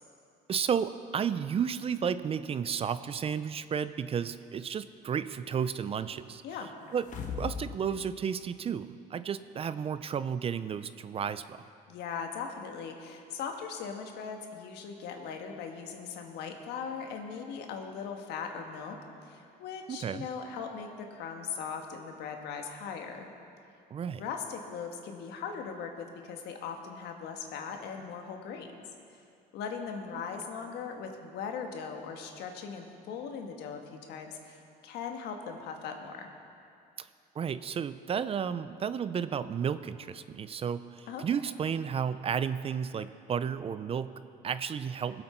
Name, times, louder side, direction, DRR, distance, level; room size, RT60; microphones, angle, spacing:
voice 1, 0.5-6.4 6.9-7.1 7.4-11.7 19.9-20.3 23.9-24.2 37.0-37.1 37.4-45.2, right 7 dB, 35° right, 13 dB, 0.4 m, -32 dB
voice 2, 6.4-6.7 11.9-19.0 19.2-23.3 24.1-28.7 29.5-36.3 41.1-41.3, left 6 dB, 80° left, 4 dB, 1.4 m, -39 dB
sound 1, 6.9-7.7 8.1-8.2, left 6 dB, 50° left, 1.3 m, -37 dB
20.5 x 8.0 x 4.5 m, 2.5 s
cardioid pair, 110°, 17 cm